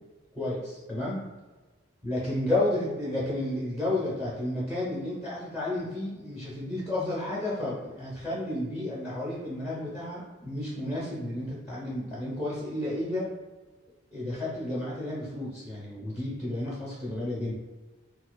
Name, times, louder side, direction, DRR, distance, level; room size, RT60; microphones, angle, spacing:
voice 1, 0.3-1.2 2.0-13.3 14.1-17.5, left 1 dB, 15° right, -6 dB, 0.8 m, -32 dB
4.3 x 2.3 x 2.2 m, 1.2 s
head